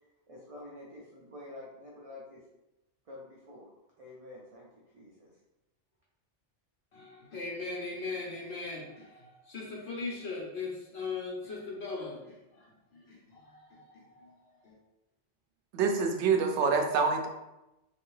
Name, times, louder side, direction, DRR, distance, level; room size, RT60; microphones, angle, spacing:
voice 1, 0.3-2.4 3.1-3.7 4.0-4.7 4.9-5.3, left 1 dB, 40° right, -5 dB, 0.5 m, -48 dB
voice 2, 6.9-14.8, left 3 dB, 60° left, -3 dB, 1.2 m, -40 dB
voice 3, 15.7-17.3, right 5 dB, 75° right, 3 dB, 0.8 m, -26 dB
3.5 x 2.8 x 3.1 m, 0.96 s
omnidirectional pair, 1.2 m